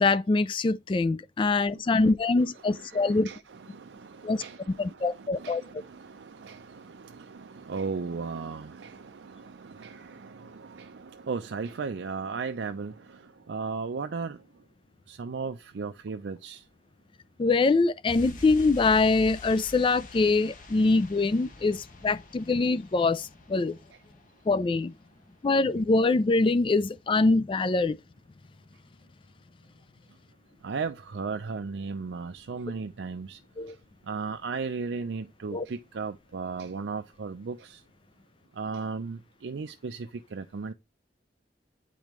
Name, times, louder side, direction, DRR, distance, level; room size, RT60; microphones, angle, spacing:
voice 1, 0.0-3.3 4.2-4.4 4.8-5.6 17.4-23.8 24.5-24.9 25.4-28.0 33.6-33.8 35.5-35.6, left 3 dB, 30° left, 0.3 m, -24 dB
voice 2, 2.6-13.2 13.5-14.4 15.1-16.6 30.6-33.4 34.1-37.8 38.6-40.7, right 4 dB, 80° right, 0.5 m, -36 dB
sound 1, 18.1-24.6 24.8-25.0, left 2 dB, 50° left, 1.3 m, -46 dB
8.4 x 5.1 x 3.1 m
head